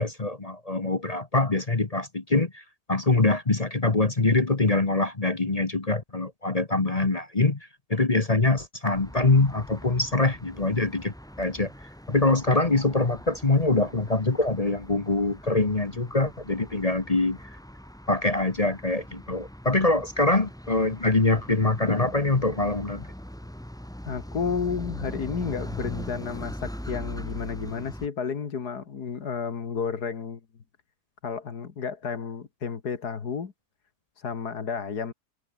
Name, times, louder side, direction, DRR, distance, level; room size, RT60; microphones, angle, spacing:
voice 1, 0.0-2.6 2.9-7.6 7.9-11.7 12.1-17.4 18.1-23.1, left 2 dB, 25° left, 1.2 m, -24 dB
sound 1, 8.9-28.1, equal, ahead, 1.6 m, -41 dB
voice 2, 24.1-30.4 31.2-33.5 34.2-35.1, left 6 dB, 65° left, 2.4 m, -31 dB
omnidirectional pair, 1.9 m